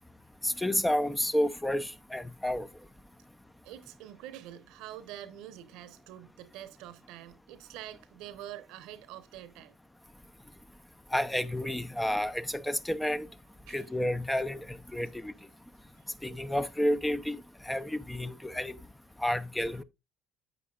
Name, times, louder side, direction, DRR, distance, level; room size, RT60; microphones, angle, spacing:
voice 1, 0.4-2.7 11.1-13.3 13.7-14.6 14.9-15.3 16.2-17.4 17.7-18.8 19.2-19.8, left 1 dB, 10° left, 0.6 m, -30 dB
voice 2, 3.6-9.8 13.7-13.9, right 12 dB, 70° right, 0.9 m, -46 dB
9.4 x 8.3 x 2.4 m
hypercardioid pair, 65°, 0 cm